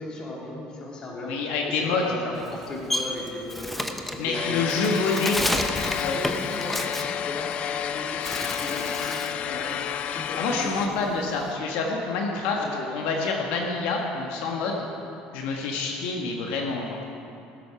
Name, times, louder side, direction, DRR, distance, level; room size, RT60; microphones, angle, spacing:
voice 1, 0.0-1.3 1.8-5.7 6.1-11.0 12.5-12.9, left 1 dB, 30° left, -3 dB, 2.7 m, -37 dB
voice 2, 1.2-2.0 4.2-5.4 6.0-6.2 10.4-12.6 12.9-14.9 15.3-17.0, left 4 dB, 80° left, 0 dB, 1.4 m, -27 dB
Bird, 2.4-7.8 8.2-9.4 9.8-11.5, left 1 dB, 5° left, 0.8 m, -31 dB
sound 1, 4.3-10.9, left 9 dB, 50° left, 0.4 m, -30 dB
17.0 x 7.9 x 5.8 m, 2.8 s
cardioid pair, 135°, 3 cm